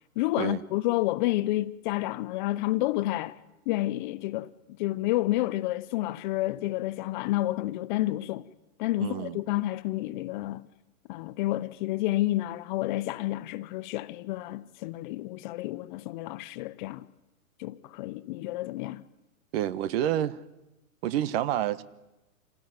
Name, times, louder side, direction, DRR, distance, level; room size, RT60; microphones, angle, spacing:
voice 1, 0.2-3.4 3.7-4.5 4.8-8.5 8.8-10.7 11.1-17.1 17.6-19.0, left 17 dB, 35° left, 0.8 m, -30 dB
voice 2, 9.0-9.4 19.5-20.4 21.0-21.8, right 12 dB, 40° right, 1.3 m, -28 dB
27.5 x 18.0 x 9.6 m
hypercardioid pair, 130°, 43 cm